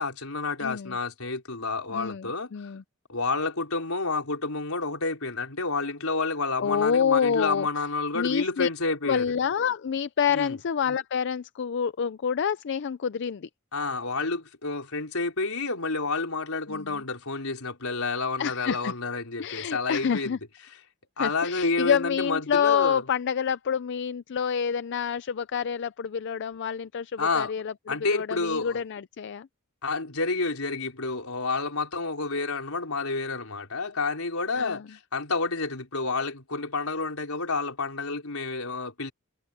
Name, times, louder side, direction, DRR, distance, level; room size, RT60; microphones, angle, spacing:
voice 1, 0.0-2.5 3.1-9.2 10.3-10.6 13.7-20.4 21.2-23.0 27.2-27.5 27.9-28.8 29.8-39.1, left 3 dB, 75° left, 4.8 m, -29 dB
voice 2, 0.6-1.0 1.9-2.8 6.6-7.7 8.1-8.7 9.0-13.5 16.7-17.0 18.4-18.9 19.4-20.4 21.2-29.5 34.6-34.9, left 7 dB, 55° left, 0.4 m, -28 dB
head